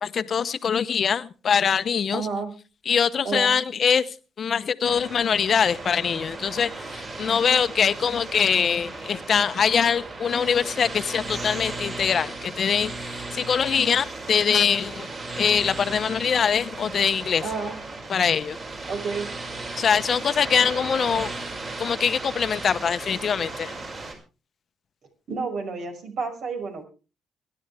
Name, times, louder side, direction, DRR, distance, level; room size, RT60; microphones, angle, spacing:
voice 1, 0.0-2.2 2.9-4.0 4.4-15.1 15.3-17.4 18.1-18.6 19.8-21.3 21.8-23.7, left 7 dB, 50° left, 0.8 m, -23 dB
voice 2, 2.1-2.5 3.2-3.5 17.4-17.8 18.9-19.3 25.3-26.9, right 4 dB, 70° right, 5.9 m, -30 dB
sound 1, 4.8-24.1, right 2 dB, 45° right, 5.8 m, -36 dB
23.5 x 11.0 x 3.4 m
cardioid pair, 90°, 0 cm